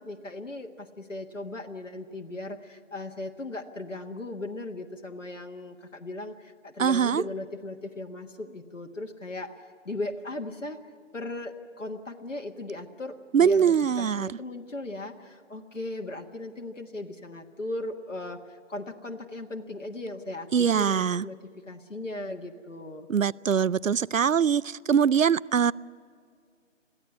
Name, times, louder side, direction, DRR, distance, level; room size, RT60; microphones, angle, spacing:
voice 1, 0.0-10.8 11.1-21.4 21.7-23.1, left 2 dB, 75° left, 3 dB, 1.5 m, -37 dB
voice 2, 6.8-7.2 13.3-14.3 20.5-21.2 23.1-25.7, right 7 dB, 85° right, 21 dB, 0.5 m, -23 dB
22.5 x 15.5 x 9.8 m, 2.2 s
figure-of-eight pair, 165°, 38 cm